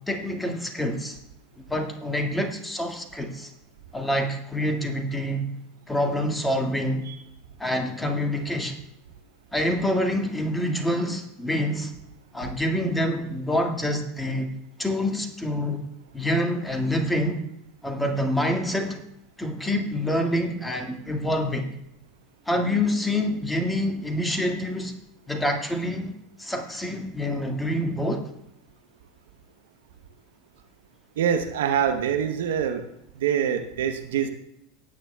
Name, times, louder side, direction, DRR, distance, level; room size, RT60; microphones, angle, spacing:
voice 1, 0.1-1.2 1.7-3.5 3.9-5.5 5.9-7.0 7.6-8.8 9.5-11.9 12.3-14.5 14.8-15.8 16.1-17.4 17.8-19.0 19.4-21.7 22.5-24.9 25.3-26.1 26.4-28.3, left 1 dB, 10° left, 3 dB, 1.9 m, -26 dB
voice 2, 31.2-32.8 33.1-34.3, right 8 dB, 75° right, 8 dB, 0.9 m, -25 dB
17.5 x 9.0 x 2.3 m, 0.77 s
hypercardioid pair, 85°, 0 cm